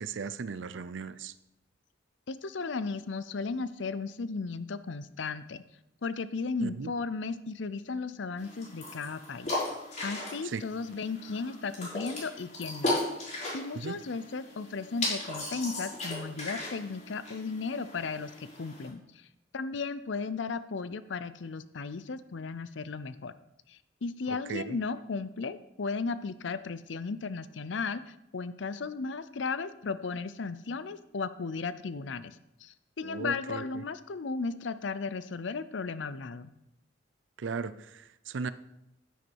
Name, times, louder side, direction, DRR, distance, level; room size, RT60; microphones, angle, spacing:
voice 1, 0.0-1.3 6.6-6.9 10.4-10.6 13.7-14.0 24.5-24.8 33.0-33.8 37.4-38.5, right 5 dB, 75° right, 15 dB, 0.5 m, -36 dB
voice 2, 2.3-5.6 6.0-9.5 10.0-19.3 19.5-23.3 23.7-36.5, left 4 dB, 70° left, 14 dB, 0.6 m, -35 dB
sound 1, 8.4-18.9, left 2 dB, 40° left, 4.0 m, -37 dB
9.4 x 9.3 x 4.6 m, 0.87 s
head